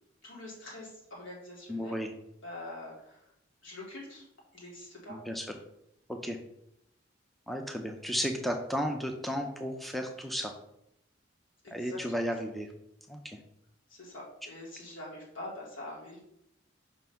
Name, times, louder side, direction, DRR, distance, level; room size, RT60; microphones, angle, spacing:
voice 1, 0.2-2.0 2.4-3.3 3.6-4.2 4.5-5.2 11.6-12.3 13.9-16.2, left 1 dB, 80° left, -4 dB, 2.5 m, -45 dB
voice 2, 1.7-2.1 5.1-5.5 6.1-6.4 7.5-10.5 11.7-12.7 13.1-13.4, equal, ahead, 3 dB, 0.4 m, -34 dB
5.0 x 4.0 x 5.6 m, 0.78 s
head